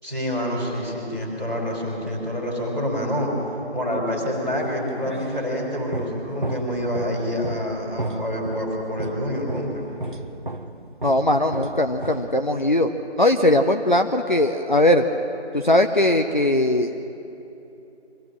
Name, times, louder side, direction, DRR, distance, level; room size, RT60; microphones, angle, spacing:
voice 1, 0.0-3.3 3.7-9.8, equal, ahead, -18 dB, 2.4 m, -27 dB
sound 1, 4.6-12.8, right 2 dB, 50° right, 0.8 m, -35 dB
voice 2, 11.0-12.9 13.2-15.0 15.5-16.9, left 1 dB, 45° left, 5 dB, 0.7 m, -19 dB
24.5 x 16.0 x 7.3 m, 2.9 s
figure-of-eight pair, 170°, 34 cm